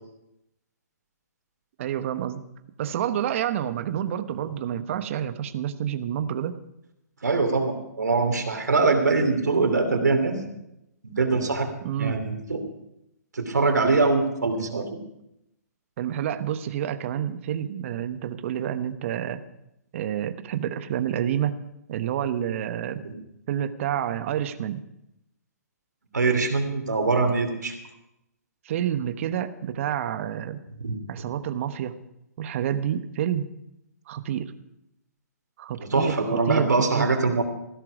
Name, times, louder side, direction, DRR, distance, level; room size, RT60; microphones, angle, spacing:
voice 1, 1.8-2.4 2.8-6.6 11.8-12.2 14.6-14.8 16.0-19.4 19.9-21.5 21.9-23.0 23.5-24.8 28.6-30.6 31.1-32.0 32.4-33.5 34.1-34.5 35.6-37.1, right 10 dB, 50° right, 11 dB, 1.0 m, -28 dB
voice 2, 7.2-10.4 11.0-11.7 12.0-12.6 13.3-14.8 23.0-23.1 26.1-27.7 30.8-31.0 35.8-37.4, right 3 dB, 85° right, 6 dB, 3.0 m, -23 dB
15.0 x 12.5 x 4.9 m, 0.83 s
hypercardioid pair, 135°, 9 cm